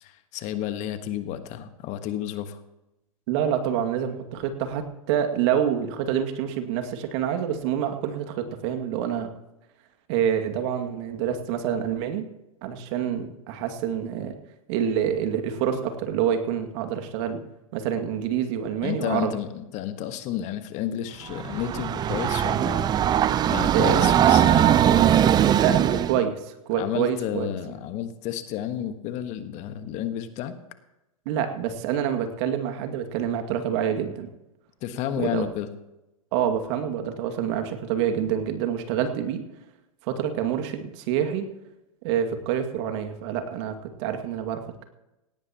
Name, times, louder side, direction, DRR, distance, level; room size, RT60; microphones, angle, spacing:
voice 1, 0.0-2.6 18.8-22.9 23.5-24.8 26.7-30.6 34.8-35.7, left 11 dB, 40° left, 9 dB, 1.4 m, -31 dB
voice 2, 3.3-9.3 10.1-12.2 12.6-14.3 14.7-17.4 17.7-19.3 23.7-24.1 24.8-27.5 31.3-34.3 35.2-35.5 36.3-39.4 40.0-41.5 42.0-44.8, right 9 dB, 50° right, 6 dB, 2.2 m, -27 dB
Train, 21.3-26.2, right 10 dB, 20° right, 0.6 m, -20 dB
18.0 x 17.5 x 3.0 m, 0.94 s
hypercardioid pair, 110°, 19 cm